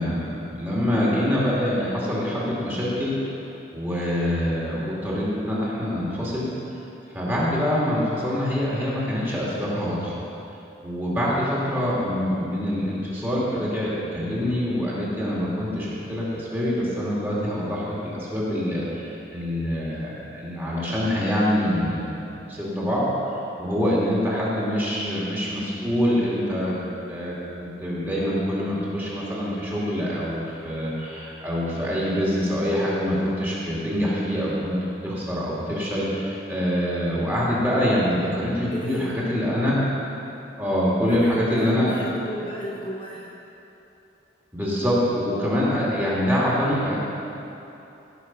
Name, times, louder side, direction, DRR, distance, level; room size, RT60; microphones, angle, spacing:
voice 1, 0.0-3.2 3.7-6.5 7.1-10.2 10.8-23.1 23.6-26.7 27.1-34.8 35.0-39.8 40.6-42.0 44.5-47.0, equal, 10° right, -7 dB, 2.6 m, -25 dB
voice 2, 38.7-39.2 41.0-43.3, equal, 30° left, -4 dB, 1.0 m, -34 dB
15.5 x 6.7 x 6.1 m, 2.9 s
head